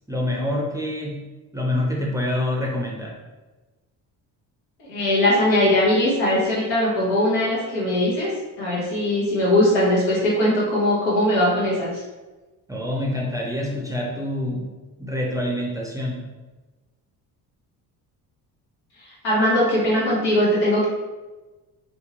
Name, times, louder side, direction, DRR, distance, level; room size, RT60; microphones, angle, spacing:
voice 1, 0.1-1.3 1.5-3.2 12.7-14.7 15.0-16.3, left 1 dB, 10° right, -3 dB, 0.4 m, -26 dB
voice 2, 4.8-8.3 8.6-12.0 19.0-20.9, left 1 dB, 90° left, -7 dB, 1.1 m, -20 dB
2.6 x 2.1 x 2.8 m, 1.2 s
supercardioid pair, 65°, 43 cm